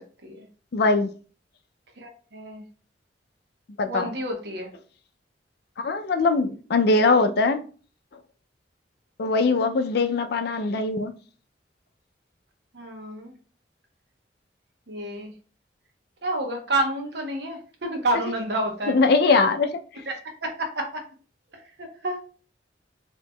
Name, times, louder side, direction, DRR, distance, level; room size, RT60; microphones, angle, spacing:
voice 1, 0.7-1.1 3.8-4.1 5.8-7.6 9.2-11.1 18.9-19.8, left 3 dB, 65° left, 0.4 m, -21 dB
voice 2, 2.0-2.6 3.9-4.7 12.7-13.3 14.9-15.3 16.2-19.0 20.1-21.0 21.8-22.2, right 1 dB, 70° right, 0.9 m, -29 dB
4.3 x 2.8 x 2.2 m
head